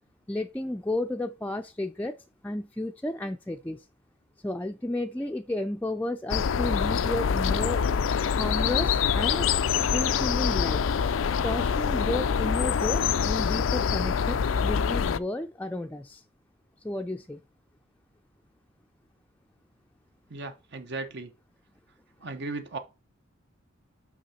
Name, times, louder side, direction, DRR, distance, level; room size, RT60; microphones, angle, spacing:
voice 1, 0.3-2.1 2.4-3.9 4.4-7.9 8.4-9.5 9.9-10.9 11.4-16.2 16.8-17.4, left 1 dB, 10° left, 0.4 m, -32 dB
sound 1, 6.3-15.2, left 6 dB, 90° left, 0.4 m, -25 dB
voice 2, 20.3-21.3 22.2-22.8, right 3 dB, 60° right, 0.8 m, -36 dB
5.8 x 5.7 x 4.2 m
head